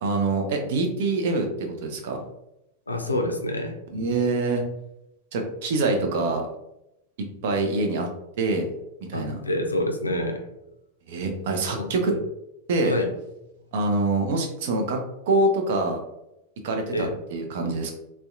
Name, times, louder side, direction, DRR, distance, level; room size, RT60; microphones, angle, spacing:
voice 1, 0.0-2.2 3.9-4.6 5.3-6.5 7.2-8.1 8.4-8.7 9.0-9.4 11.1-12.1 12.7-13.0 13.7-15.0 15.3-16.0 16.6-17.9, right 2 dB, 55° right, 3 dB, 0.5 m, -25 dB
voice 2, 2.9-3.8 9.1-10.4 11.8-12.2 12.8-13.1 16.9-17.1, left 1 dB, 80° left, 4 dB, 0.4 m, -27 dB
2.6 x 2.1 x 2.3 m, 0.87 s
figure-of-eight pair, 90°, 0 cm